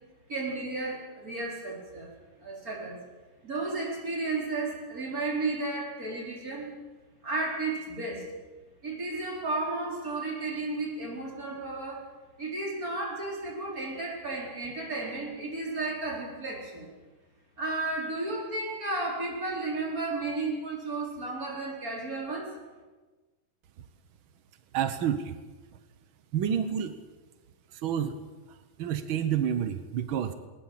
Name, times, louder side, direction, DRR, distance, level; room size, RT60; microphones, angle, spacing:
voice 1, 0.3-2.1 2.4-3.0 3.4-6.7 7.2-8.3 8.8-12.1 12.4-16.9 17.6-22.5, right 2 dB, 25° right, -1 dB, 5.0 m, -33 dB
voice 2, 24.7-25.4 26.3-26.9 27.7-28.2 28.5-30.3, right 9 dB, 75° right, 10 dB, 1.1 m, -29 dB
21.0 x 19.0 x 7.5 m, 1.3 s
omnidirectional pair, 3.8 m